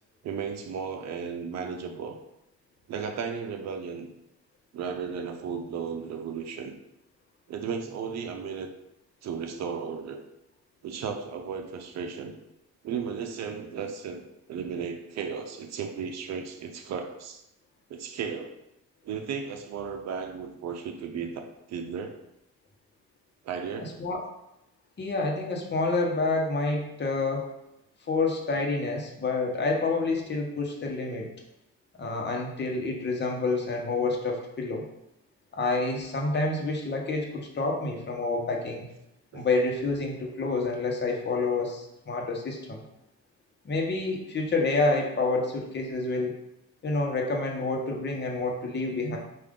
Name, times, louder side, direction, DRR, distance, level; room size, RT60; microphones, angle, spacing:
voice 1, 0.2-2.2 2.9-4.1 4.7-6.8 7.5-8.7 9.2-10.2 10.8-12.4 12.8-14.2 14.5-17.4 17.9-18.6 19.0-22.1 23.4-24.0 34.0-34.1 39.3-39.5, right 6 dB, 60° right, 5 dB, 0.7 m, -35 dB
voice 2, 23.8-24.2 25.0-27.5 28.1-31.3 32.0-34.8 35.5-38.8 39.3-42.8 43.6-46.3 46.8-49.2, left 3 dB, 35° left, 0 dB, 1.0 m, -28 dB
4.7 x 2.5 x 3.7 m, 0.85 s
cardioid pair, 90°, 30 cm